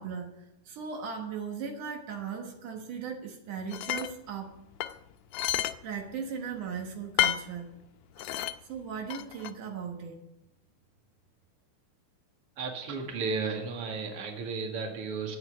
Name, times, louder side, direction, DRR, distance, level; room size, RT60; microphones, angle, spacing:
voice 1, 0.0-4.6 5.8-7.7 8.2-8.4 8.7-10.2, right 6 dB, 75° right, 3 dB, 2.8 m, -38 dB
sound 1, 3.7-4.1 4.8-5.8 6.1-6.2 7.2-7.5 8.2-8.6 9.1-9.5, left 13 dB, 80° left, 1.7 m, -29 dB
voice 2, 12.6-15.4, right 4 dB, 50° right, 2 dB, 2.6 m, -34 dB
11.0 x 8.2 x 8.1 m, 0.90 s
omnidirectional pair, 3.7 m